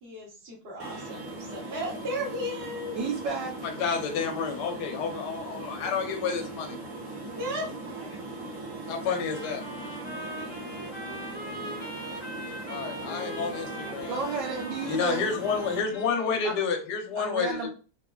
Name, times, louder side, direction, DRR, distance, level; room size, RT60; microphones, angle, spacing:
voice 1, 0.0-3.0 7.4-7.7 10.2-10.6, equal, 45° right, -5 dB, 0.8 m, -35 dB
sound 1, 0.8-15.8, right 2 dB, 10° right, 0.8 m, -39 dB
voice 2, 2.9-3.5 14.1-15.2 16.4-16.5 17.2-17.7, right 4 dB, 75° right, -1 dB, 1.4 m, -32 dB
voice 3, 3.6-6.8 8.9-9.6 10.5-10.6 11.4-11.5 12.7-14.2 14.8-17.7, left 5 dB, 65° left, 3 dB, 1.2 m, -30 dB
Trumpet, 9.1-16.5, equal, 30° left, 0.9 m, -41 dB
3.7 x 3.1 x 2.3 m, 0.35 s
omnidirectional pair, 2.0 m